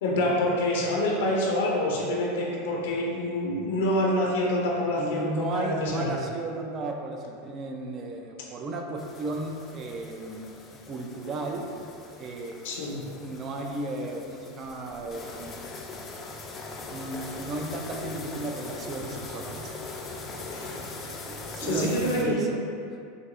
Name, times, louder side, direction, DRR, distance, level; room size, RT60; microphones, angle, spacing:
voice 1, 0.0-6.2 12.6-13.0 20.5-20.8 21.6-22.4, left 1 dB, 75° left, -2 dB, 0.6 m, -27 dB
voice 2, 4.9-10.6 10.9-11.6 12.2-12.6 13.2-15.5 16.8-19.7 20.9-22.6, right 2 dB, 35° right, 2 dB, 0.4 m, -34 dB
sound 1, 9.0-22.2, left 3 dB, 30° left, 0.4 m, -41 dB
5.0 x 2.0 x 2.5 m, 2.5 s
hypercardioid pair, 105°, 0 cm